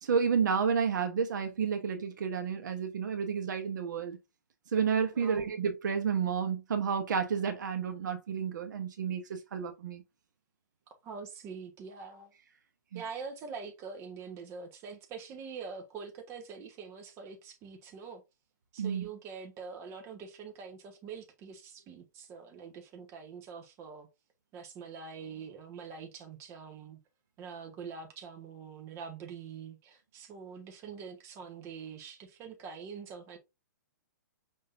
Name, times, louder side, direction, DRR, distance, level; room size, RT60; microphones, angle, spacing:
voice 1, 0.0-4.2 4.7-10.0 12.9-13.0 18.8-19.1, right 6 dB, 70° right, 1.0 m, -31 dB
voice 2, 5.1-5.6 11.0-12.3 12.9-18.2 18.7-24.1 24.5-27.0 27.4-33.4, right 5 dB, 25° right, 1.2 m, -44 dB
5.4 x 3.7 x 2.5 m
hypercardioid pair, 145°, 10 cm